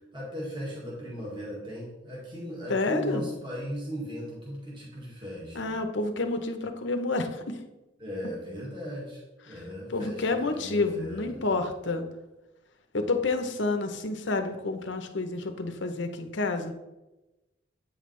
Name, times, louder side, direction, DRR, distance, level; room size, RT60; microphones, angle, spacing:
voice 1, 0.1-5.7 8.0-9.2 9.5-11.4, equal, 25° right, -5 dB, 1.8 m, -37 dB
voice 2, 2.7-3.3 5.5-7.6 9.5-9.6 9.9-12.0 12.9-16.7, left 3 dB, 65° left, 7 dB, 0.8 m, -29 dB
8.5 x 5.3 x 3.2 m, 1.0 s
head